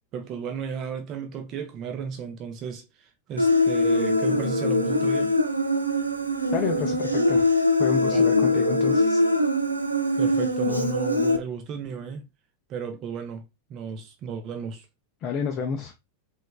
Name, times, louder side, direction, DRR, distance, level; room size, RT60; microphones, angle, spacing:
voice 1, 0.1-5.3 8.1-8.2 10.2-12.3 12.7-13.4 13.7-14.9, right 6 dB, 35° right, 0.5 m, -34 dB
Human voice, 3.4-11.4, left 2 dB, 85° right, 0.4 m, -22 dB
voice 2, 6.5-7.5 7.8-9.2 15.2-15.9, left 6 dB, 35° left, 0.4 m, -30 dB
3.2 x 3.1 x 2.2 m
figure-of-eight pair, 90°, 0 cm